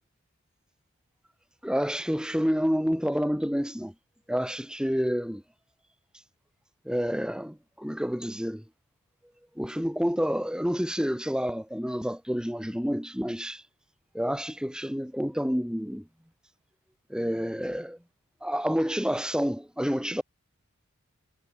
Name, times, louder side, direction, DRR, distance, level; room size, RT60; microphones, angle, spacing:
voice 1, 1.6-3.9 4.3-5.4 6.9-8.6 9.6-13.6 14.1-16.0 17.1-18.0 18.4-20.2, equal, 5° right, 5.2 m, -29 dB
head